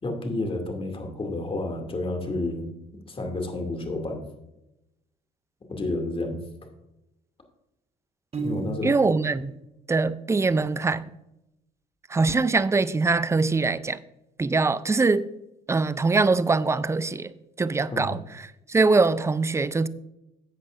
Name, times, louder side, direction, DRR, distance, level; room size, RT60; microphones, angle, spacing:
voice 1, 0.0-2.7 3.1-4.2 5.7-6.4 8.4-8.9 17.9-18.1, left 2 dB, 30° left, 2.4 m, -30 dB
Piano, 8.3-9.3, right 4 dB, 35° right, 1.4 m, -33 dB
voice 2, 8.8-9.5 9.9-11.1 12.1-14.0 14.4-15.3 15.7-17.3 17.6-18.2 18.7-19.9, right 3 dB, 15° right, 0.5 m, -22 dB
12.0 x 8.1 x 2.5 m
supercardioid pair, 65°, 18 cm